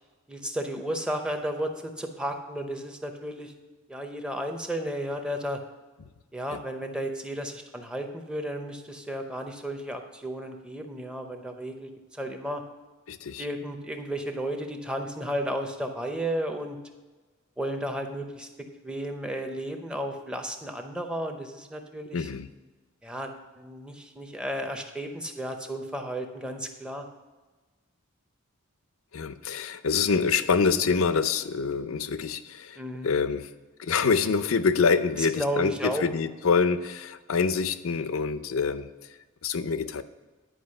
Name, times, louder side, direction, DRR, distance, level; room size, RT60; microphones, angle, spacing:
voice 1, 0.3-3.5 3.9-5.6 6.3-12.6 13.4-16.8 17.6-22.3 23.0-27.0 32.8-33.1 35.2-36.0, equal, 5° right, 5 dB, 0.7 m, -33 dB
voice 2, 13.1-13.4 22.1-22.5 29.1-33.5 33.8-38.9 39.4-40.0, left 5 dB, 75° left, 12 dB, 0.5 m, -26 dB
10.0 x 5.1 x 6.4 m, 1.3 s
head